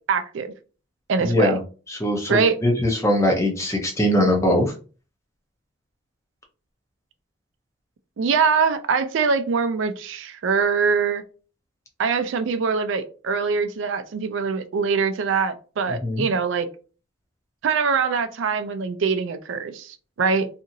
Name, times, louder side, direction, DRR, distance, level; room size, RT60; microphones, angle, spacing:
voice 1, 0.1-0.5 1.1-1.5 2.3-2.6 8.2-11.2 12.0-16.7 17.6-20.5, right 5 dB, 70° right, 0.4 m, -23 dB
voice 2, 1.2-1.6 1.9-4.7 15.9-16.3, left 1 dB, 15° left, 0.6 m, -21 dB
2.8 x 2.6 x 2.6 m
head